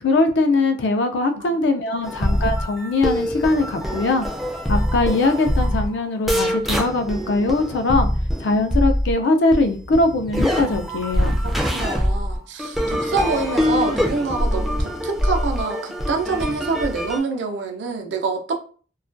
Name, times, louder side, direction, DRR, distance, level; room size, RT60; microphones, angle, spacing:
voice 1, 0.0-4.3 4.7-8.1 8.4-11.3, left 2 dB, 75° left, 6 dB, 0.4 m, -21 dB
sound 1, 2.0-9.1 9.5-17.2, equal, ahead, 0.3 m, -24 dB
voice 2, 11.4-18.6, right 4 dB, 85° right, 3 dB, 0.5 m, -26 dB
2.3 x 2.2 x 2.5 m, 0.40 s
head